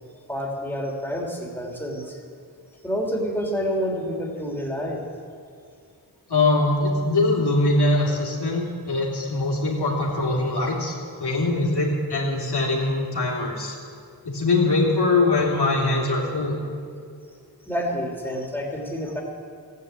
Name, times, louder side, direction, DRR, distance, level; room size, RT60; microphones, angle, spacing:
voice 1, 0.3-2.2 2.8-5.0 17.6-19.2, equal, 5° left, -2 dB, 3.1 m, -28 dB
voice 2, 6.3-10.9 11.2-13.7 14.2-16.6, left 2 dB, 75° left, -2 dB, 3.0 m, -22 dB
15.0 x 9.4 x 8.3 m, 2.3 s
wide cardioid pair, 60°, 39 cm